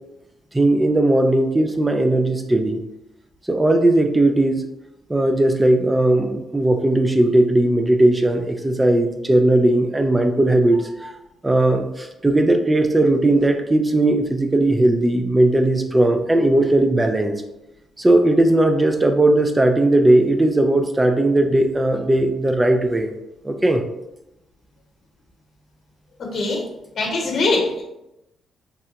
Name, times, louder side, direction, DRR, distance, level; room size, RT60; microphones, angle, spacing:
voice 1, 0.5-2.8 3.5-4.6 5.1-11.2 11.4-17.4 18.0-23.1 23.4-23.8, right 1 dB, 15° right, 6 dB, 0.4 m, -18 dB
voice 2, 26.2-26.6 27.0-27.8, left 3 dB, 55° left, 0 dB, 1.0 m, -22 dB
3.6 x 2.1 x 2.8 m, 0.92 s
cardioid pair, 90°, 0 cm